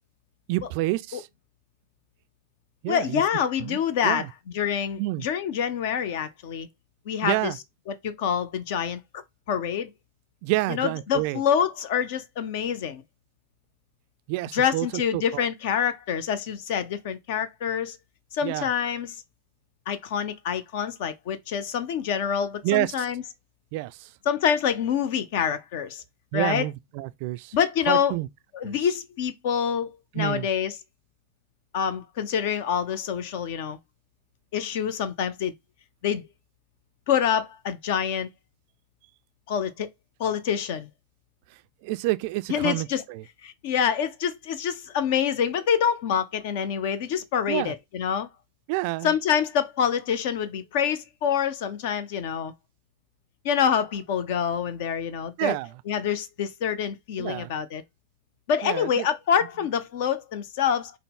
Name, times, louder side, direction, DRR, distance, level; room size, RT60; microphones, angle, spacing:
voice 1, 0.5-1.3 2.8-3.2 3.6-3.8 4.0-4.3 5.0-5.3 7.2-7.6 10.4-11.4 14.3-15.5 18.4-18.7 22.6-23.1 23.7-24.1 26.3-27.6 27.9-28.3 28.6-28.8 30.1-30.5 41.8-43.2 47.5-47.7 48.7-49.1 55.4-55.7 57.2-57.5 58.6-59.1, right 19 dB, 45° right, 0.3 m, -28 dB
voice 2, 2.9-4.3 4.5-6.7 7.1-7.5 7.9-9.2 9.5-9.9 10.7-13.0 14.5-18.0 18.3-19.2 19.9-23.2 24.3-26.0 26.3-26.7 27.5-28.2 28.5-30.8 31.7-33.8 34.5-35.5 36.0-36.3 37.1-38.3 39.5-39.9 40.2-40.9 42.5-43.0 43.4-48.3 49.0-52.5 53.4-55.6 55.9-57.8 58.5-60.9, left 8 dB, 50° left, 0.5 m, -26 dB
5.4 x 2.0 x 3.8 m
figure-of-eight pair, 90°, 0 cm